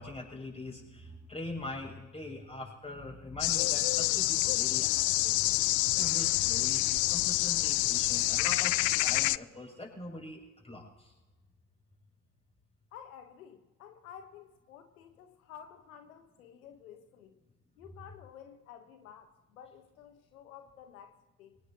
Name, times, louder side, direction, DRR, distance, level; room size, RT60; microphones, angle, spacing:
voice 1, 0.0-5.6 5.9-11.1, left 2 dB, 15° left, 0 dB, 6.8 m, -43 dB
sound 1, 3.4-9.4, left 19 dB, 50° left, 0.4 m, -27 dB
voice 2, 12.9-17.4 17.8-21.6, left 9 dB, 90° left, 7 dB, 1.3 m, -52 dB
24.5 x 19.0 x 2.9 m, 1.1 s
hypercardioid pair, 65°, 41 cm